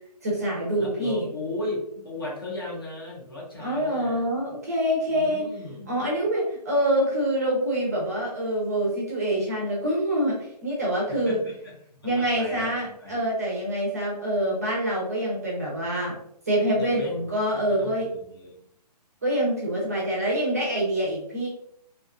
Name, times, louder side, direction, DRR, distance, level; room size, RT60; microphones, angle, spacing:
voice 1, 0.2-1.3 3.6-5.4 5.9-11.4 12.0-16.2 16.5-18.1 19.2-21.5, right 1 dB, 25° right, -4 dB, 0.6 m, -26 dB
voice 2, 0.8-4.3 5.1-6.0 11.1-11.7 12.0-13.2 16.6-17.3 17.7-18.6, left 2 dB, 35° left, -2 dB, 0.6 m, -36 dB
2.6 x 2.3 x 2.5 m, 0.70 s
hypercardioid pair, 175°, 21 cm